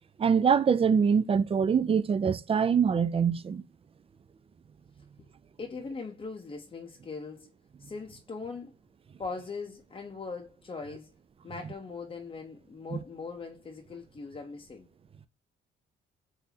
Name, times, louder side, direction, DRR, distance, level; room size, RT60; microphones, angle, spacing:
voice 1, 0.2-3.6 12.9-13.0, right 6 dB, 30° right, 0.4 m, -24 dB
voice 2, 5.6-7.5 7.8-8.7 9.2-11.1 11.4-14.9, left 4 dB, 25° left, 0.7 m, -40 dB
4.0 x 2.6 x 2.7 m
cardioid pair, 90°, 20 cm